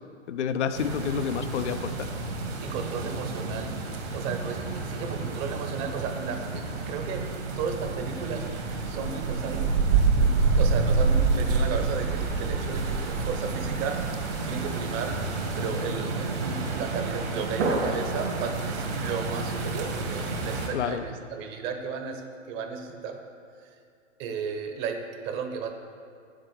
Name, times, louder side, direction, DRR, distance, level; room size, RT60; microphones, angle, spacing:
voice 1, 0.3-2.1 20.7-21.0, left 7 dB, 65° left, 9 dB, 0.7 m, -29 dB
sound 1, 0.7-20.7, right 4 dB, 60° right, 2.4 m, -28 dB
voice 2, 2.6-3.8 4.1-8.5 8.9-9.8 10.0-14.0 14.4-15.2 15.6-22.2 22.5-23.2 24.2-25.7, right 6 dB, 30° right, 5 dB, 1.2 m, -34 dB
8.9 x 7.6 x 6.5 m, 2.4 s
hypercardioid pair, 120°, 38 cm